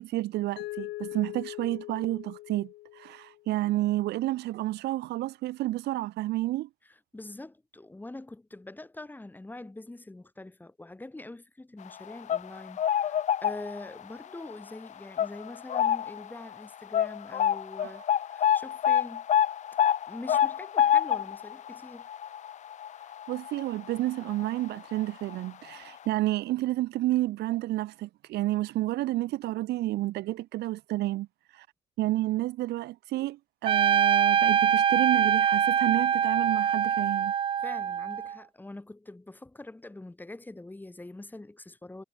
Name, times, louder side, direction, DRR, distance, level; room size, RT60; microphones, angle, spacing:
voice 1, 0.0-6.7 17.8-18.0 23.3-31.3 31.5-31.7 32.0-37.3, right 16 dB, 80° right, 3.2 m, -30 dB
Mallet percussion, 0.6-3.5, left 17 dB, 85° left, 7.6 m, -41 dB
voice 2, 7.1-19.3 20.1-22.1 37.6-42.0, left 2 dB, 10° left, 6.5 m, -44 dB
sound 1, 12.0-14.0 14.4-14.6 15.2-16.3 16.5-16.6 16.9-24.0 24.3-24.4 25.3-25.4 25.7-25.8, left 9 dB, 45° left, 0.8 m, -27 dB
Trumpet, 33.7-38.4, right 8 dB, 30° right, 0.3 m, -24 dB
cardioid pair, 110°, 17 cm